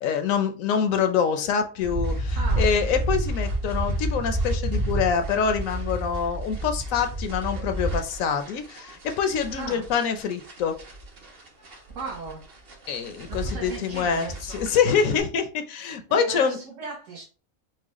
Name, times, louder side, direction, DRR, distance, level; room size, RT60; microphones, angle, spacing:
voice 1, 0.0-10.7 12.9-16.6, left 7 dB, 75° left, 6 dB, 1.0 m, -25 dB
sound 1, 1.8-15.2, right 1 dB, 45° right, 1.1 m, -30 dB
voice 2, 2.4-2.7 9.6-9.8 11.9-12.4 13.3-14.9 16.1-17.2, right 4 dB, 70° right, -2 dB, 1.1 m, -37 dB
4.7 x 2.1 x 2.9 m, 0.37 s
omnidirectional pair, 1.4 m